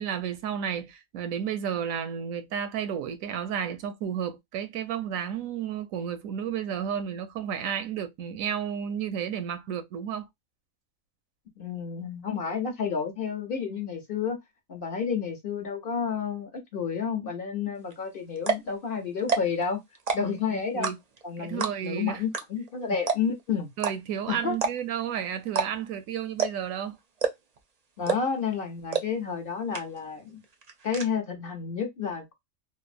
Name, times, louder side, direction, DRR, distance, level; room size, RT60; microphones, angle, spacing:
voice 1, 0.0-10.3 20.2-21.0 21.4-22.2 23.8-27.0, right 8 dB, 80° right, 1.0 m, -32 dB
voice 2, 11.6-14.4 14.7-19.8 20.1-20.9 21.2-23.7 24.3-24.6 28.0-30.4 30.8-32.3, left 6 dB, 55° left, 0.7 m, -30 dB
sound 1, 17.9-18.0 18.4-18.7 19.2-19.6 19.9-20.4 20.8-21.2 21.6-21.9 22.3-22.4 22.7-22.8 23.1-23.4 23.8-23.9 24.5-25.0 25.5-25.7 25.9-26.0 26.4-26.7 27.2-27.6 28.1-28.4 28.9-29.0 29.4-29.5 29.7-30.2 30.4-31.0, right 5 dB, 50° right, 0.4 m, -27 dB
3.2 x 2.0 x 2.4 m
omnidirectional pair, 1.4 m